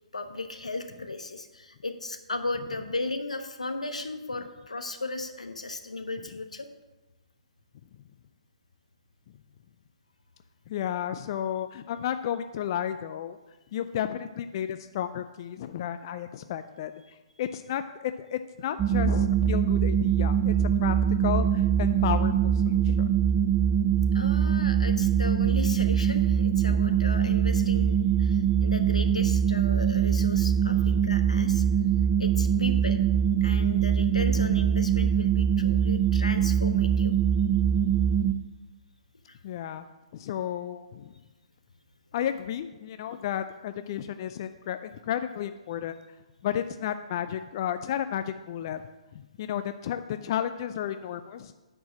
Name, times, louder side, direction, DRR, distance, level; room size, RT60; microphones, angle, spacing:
voice 1, 0.1-6.7 24.1-31.6 32.2-33.0 33.4-37.1 39.3-39.4, left 2 dB, 85° left, 7 dB, 1.0 m, -36 dB
voice 2, 10.7-13.4 13.7-23.1 26.6-27.0 30.7-31.2 34.3-34.6 39.4-39.9 40.1-41.1 42.1-46.0 46.4-48.8 49.1-51.5, left 10 dB, 40° left, 10 dB, 0.4 m, -33 dB
sound 1, 18.8-38.3, right 8 dB, 15° right, 0.4 m, -23 dB
9.5 x 4.7 x 7.5 m, 1.1 s
figure-of-eight pair, 130°, 4 cm